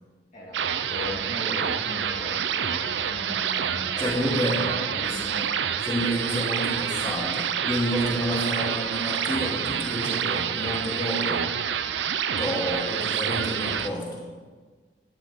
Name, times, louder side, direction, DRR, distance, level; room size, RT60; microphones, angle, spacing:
voice 1, 0.3-5.6, left 1 dB, 45° left, -5 dB, 2.3 m, -38 dB
sound 1, 0.5-13.9, right 8 dB, 85° right, 0.5 m, -28 dB
voice 2, 4.0-4.7 5.0-5.2 5.9-11.4 12.3-14.3, equal, 25° left, -4 dB, 2.6 m, -29 dB
12.0 x 11.0 x 3.7 m, 1.4 s
head